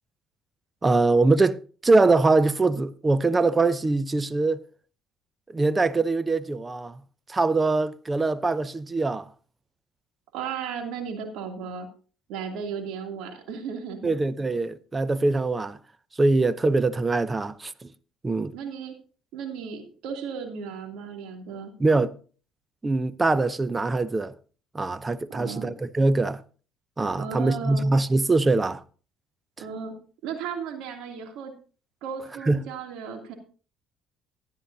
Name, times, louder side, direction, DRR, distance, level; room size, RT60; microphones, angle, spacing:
voice 1, 0.8-1.6 1.8-4.6 5.5-7.0 7.3-9.3 14.0-15.8 16.2-17.9 18.2-18.5 21.8-22.2 22.8-24.3 24.7-26.4 27.0-28.8 32.4-32.6, right 3 dB, 20° right, 0.7 m, -23 dB
voice 2, 10.3-11.9 12.3-14.1 18.5-18.9 19.3-21.7 25.3-25.7 27.2-27.9 29.6-29.9 30.2-31.5 32.0-33.3, right 6 dB, 75° right, 2.8 m, -35 dB
13.5 x 11.5 x 2.8 m
supercardioid pair, 85°, 0 cm